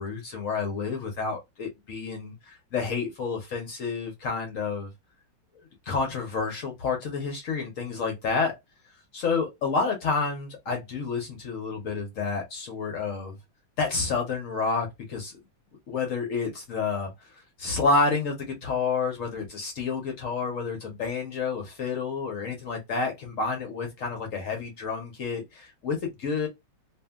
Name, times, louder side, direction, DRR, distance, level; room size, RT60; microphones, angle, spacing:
voice 1, 0.0-4.9 5.9-8.5 9.1-13.4 13.8-15.4 15.9-17.3 17.6-26.5, left 4 dB, 65° left, 0.8 m, -29 dB
2.7 x 2.6 x 2.2 m
omnidirectional pair, 2.0 m